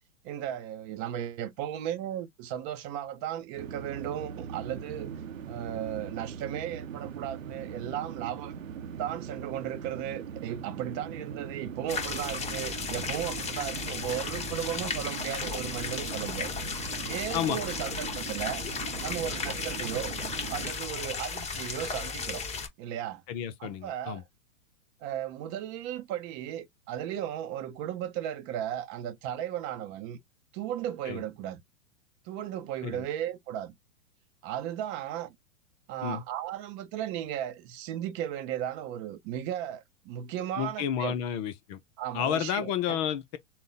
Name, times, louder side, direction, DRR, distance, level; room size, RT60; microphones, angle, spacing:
voice 1, 0.2-5.1 5.5-8.6 9.0-16.5 17.0-18.6 19.0-20.1 20.5-22.4 22.8-23.2 23.6-24.2 25.0-30.2 30.5-31.6 32.3-33.7 34.4-35.3 35.9-41.1 42.0-43.0, right 11 dB, 35° right, 0.7 m, -35 dB
sound 1, 3.6-20.7, right 8 dB, 75° right, 0.7 m, -41 dB
sound 2, 11.9-22.7, left 5 dB, 15° left, 1.1 m, -35 dB
voice 2, 23.3-24.2 31.0-31.2 32.8-33.0 36.0-36.2 40.6-41.8 42.1-43.4, left 9 dB, 30° left, 0.5 m, -31 dB
3.8 x 2.2 x 3.8 m
hypercardioid pair, 110°, 39 cm